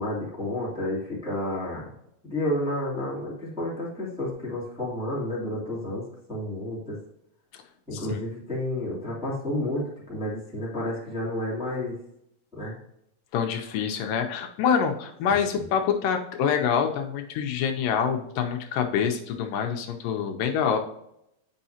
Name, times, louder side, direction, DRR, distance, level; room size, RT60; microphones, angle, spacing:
voice 1, 0.0-1.9 2.2-7.0 7.9-12.0 12.5-12.8 15.3-15.7, left 1 dB, ahead, -7 dB, 2.2 m, -31 dB
voice 2, 7.9-8.2 13.3-20.8, left 7 dB, 80° left, 4 dB, 2.3 m, -26 dB
8.7 x 5.5 x 2.8 m, 0.78 s
omnidirectional pair, 3.9 m